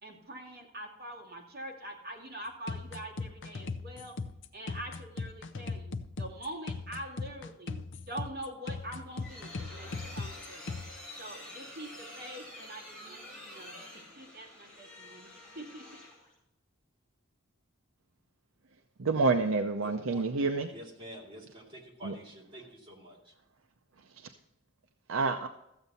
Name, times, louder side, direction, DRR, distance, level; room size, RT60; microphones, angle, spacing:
voice 1, 0.0-4.1 4.5-10.7 11.2-15.3 15.5-16.0, right 1 dB, 50° right, -1 dB, 2.3 m, -44 dB
sound 1, 2.7-10.9, left 3 dB, 65° left, 0.6 m, -38 dB
sound 2, 8.8-16.3, left 1 dB, 5° left, 5.2 m, -48 dB
voice 2, 19.0-20.7 22.0-22.1 24.2-24.3 25.1-25.5, right 3 dB, 80° right, 6 dB, 0.6 m, -28 dB
voice 3, 19.8-23.3, equal, 25° right, -2 dB, 2.5 m, -49 dB
14.0 x 8.0 x 4.1 m, 0.85 s
head